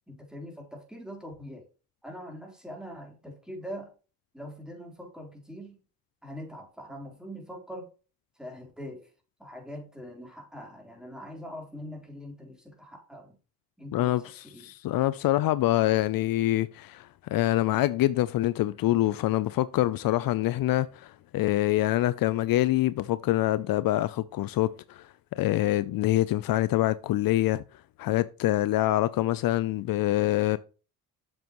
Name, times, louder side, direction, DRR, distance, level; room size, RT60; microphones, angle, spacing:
voice 1, 0.1-1.7 2.0-3.9 4.3-5.8 6.2-7.9 8.4-9.1 9.4-13.4 13.8-14.7, equal, ahead, 3.8 m, -43 dB
voice 2, 13.9-14.2 14.6-27.6 28.0-30.6, left 15 dB, 70° left, 0.6 m, -25 dB
7.6 x 7.5 x 3.1 m
cardioid pair, 80°, 36 cm